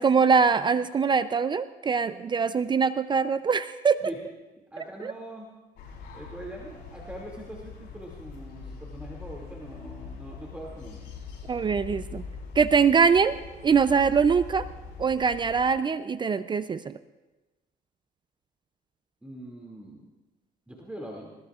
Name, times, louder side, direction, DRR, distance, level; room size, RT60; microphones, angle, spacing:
voice 1, 0.0-4.0 5.0-5.1 11.5-12.2 12.6-13.4 13.6-14.7 15.0-16.9, right 5 dB, 25° right, 13 dB, 0.4 m, -23 dB
voice 2, 4.7-5.5 6.1-11.1 19.2-20.0 20.7-21.3, right 1 dB, 5° right, -3 dB, 2.4 m, -42 dB
sound 1, 5.8-15.7, left 4 dB, 75° left, 6.0 m, -42 dB
20.5 x 18.5 x 2.4 m, 1.1 s
cardioid pair, 110°, 17 cm